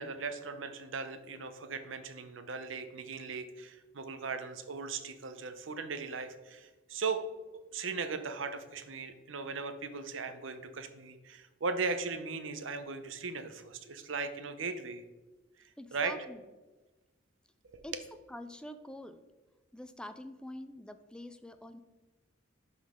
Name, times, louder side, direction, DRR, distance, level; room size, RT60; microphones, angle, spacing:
voice 1, 0.0-7.2 7.7-15.0 15.6-16.1 17.7-18.0, right 4 dB, 75° right, 9 dB, 0.7 m, -38 dB
voice 2, 15.8-16.4 17.8-18.0 18.3-19.2 19.7-21.8, left 1 dB, 5° left, 10 dB, 0.4 m, -46 dB
11.5 x 4.0 x 3.6 m, 1.2 s
head